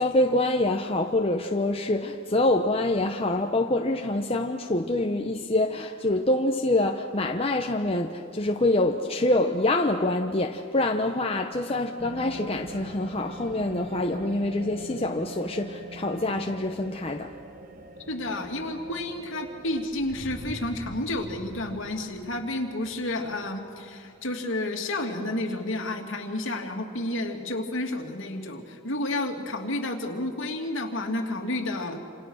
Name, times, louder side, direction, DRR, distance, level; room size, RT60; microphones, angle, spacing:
voice 1, 0.0-17.3, left 2 dB, 25° left, 3 dB, 0.9 m, -25 dB
sound 1, 12.0-19.9, right 2 dB, 40° right, 1.1 m, -43 dB
voice 2, 18.1-32.1, left 1 dB, 65° left, 3 dB, 2.7 m, -31 dB
sound 2, 19.5-24.5, equal, 10° right, 7.1 m, -45 dB
28.0 x 27.5 x 6.4 m, 2.3 s
head